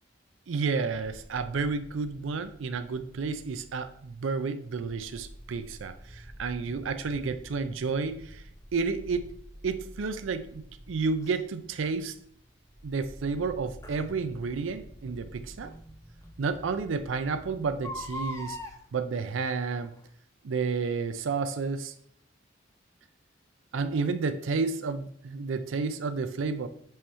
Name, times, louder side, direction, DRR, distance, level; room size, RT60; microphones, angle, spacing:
voice 1, 0.5-8.4 8.7-9.3 9.6-12.1 12.8-15.7 16.4-18.6 18.9-19.9 20.4-21.9 23.7-26.7, right 4 dB, 90° right, 10 dB, 0.5 m, -31 dB
sound 1, 2.9-18.7, equal, 10° right, 0.5 m, -49 dB
Crying sobbing, 11.2-11.4 13.8-14.0 15.6-15.7 16.2-16.3 16.5-16.6 17.7-18.8 19.7-20.0 20.6-20.7, left 1 dB, 15° left, 0.7 m, -39 dB
7.5 x 3.0 x 4.2 m, 0.64 s
head